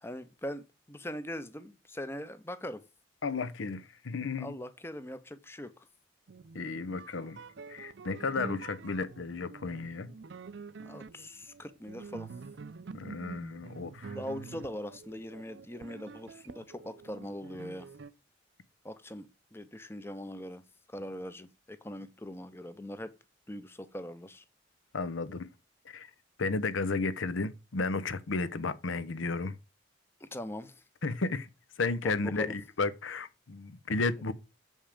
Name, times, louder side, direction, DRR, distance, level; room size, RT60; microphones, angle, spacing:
voice 1, 0.0-2.8 4.4-5.7 10.8-12.3 14.1-17.9 18.8-20.6 20.9-23.1 23.5-24.4 30.2-30.8 32.0-32.6, equal, 10° left, 0.7 m, -41 dB
voice 2, 3.2-4.6 6.5-7.4 7.7-10.1 12.9-14.2 24.9-25.5 25.8-26.1 26.4-29.6 31.0-31.5 31.8-34.3, left 3 dB, 80° left, 0.7 m, -33 dB
sound 1, 6.3-18.1, right 4 dB, 65° right, 0.5 m, -47 dB
7.3 x 5.5 x 5.0 m
head